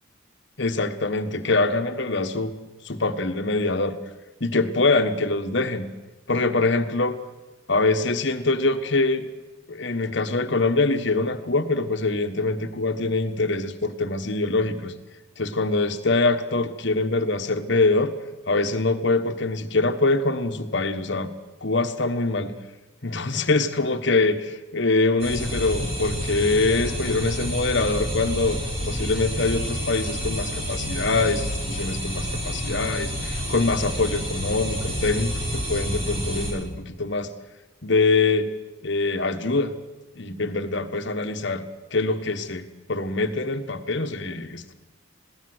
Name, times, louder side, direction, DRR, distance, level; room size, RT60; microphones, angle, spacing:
voice 1, 0.6-2.5 2.8-4.0 4.4-5.9 6.3-7.2 7.7-9.2 9.7-14.9 15.4-18.1 18.5-21.3 21.6-22.5 23.0-28.6 28.9-37.3 37.8-38.5 38.8-39.7 40.1-41.6 41.9-42.6 42.9-44.7, left 3 dB, 60° left, 8 dB, 1.4 m, -24 dB
sound 1, 25.2-36.5, equal, 30° right, 5.7 m, -29 dB
21.0 x 17.0 x 8.0 m, 1.1 s
head